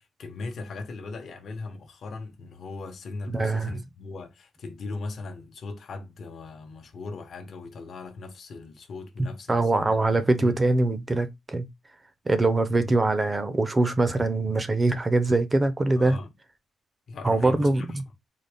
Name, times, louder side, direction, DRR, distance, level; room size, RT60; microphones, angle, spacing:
voice 1, 0.0-10.6 12.8-12.9 16.0-16.3 17.1-18.0, left 3 dB, 55° left, 0.9 m, -38 dB
voice 2, 3.3-3.8 9.2-11.7 12.3-16.2 17.2-18.0, right 2 dB, 20° right, 0.6 m, -23 dB
4.0 x 2.0 x 3.4 m
cardioid pair, 130°, 0 cm